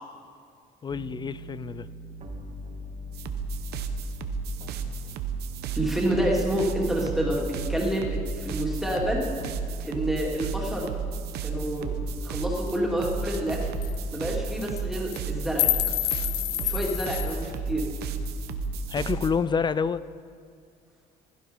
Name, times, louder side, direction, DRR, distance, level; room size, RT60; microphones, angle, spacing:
voice 1, 0.8-1.9 18.9-20.1, left 6 dB, 25° left, 0.4 m, -28 dB
sound 1, 0.9-19.4, left 1 dB, 45° right, 2.0 m, -40 dB
sound 2, 3.1-19.3, right 6 dB, 75° right, 1.0 m, -33 dB
voice 2, 5.7-9.2 9.8-10.9 11.4-11.9 12.2-13.6 14.1-15.7 16.6-17.8, equal, ahead, 3.0 m, -28 dB
sound 3, 12.7-12.8 13.0-13.1 13.3-13.5 13.8-13.9 14.6-14.8 15.1-17.4, left 15 dB, 85° left, 0.6 m, -28 dB
15.5 x 11.5 x 5.5 m
cardioid pair, 110°, 17 cm